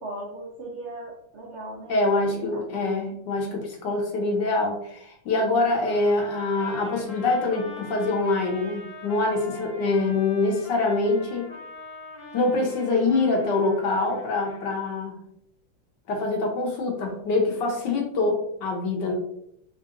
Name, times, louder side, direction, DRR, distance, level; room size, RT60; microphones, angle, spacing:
voice 1, 0.0-3.0, right 1 dB, 75° right, -3 dB, 0.6 m, -39 dB
voice 2, 1.9-11.5 12.3-15.2 16.1-19.1, left 3 dB, 65° left, 1 dB, 1.4 m, -25 dB
Trumpet, 5.7-14.7, left 2 dB, 20° left, 0.8 m, -43 dB
3.7 x 2.5 x 3.7 m, 0.72 s
omnidirectional pair, 2.2 m